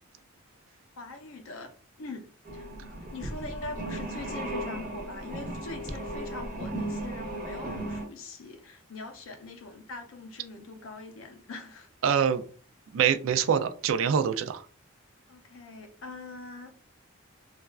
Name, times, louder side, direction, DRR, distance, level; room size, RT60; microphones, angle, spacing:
voice 1, 1.0-2.7 3.1-11.9 15.3-16.7, left 3 dB, 75° left, 0.5 m, -42 dB
sound 1, 2.4-8.0, right 1 dB, 40° right, 0.8 m, -36 dB
voice 2, 12.0-12.4 12.9-14.6, right 7 dB, 70° right, 0.3 m, -25 dB
3.2 x 2.3 x 2.3 m
head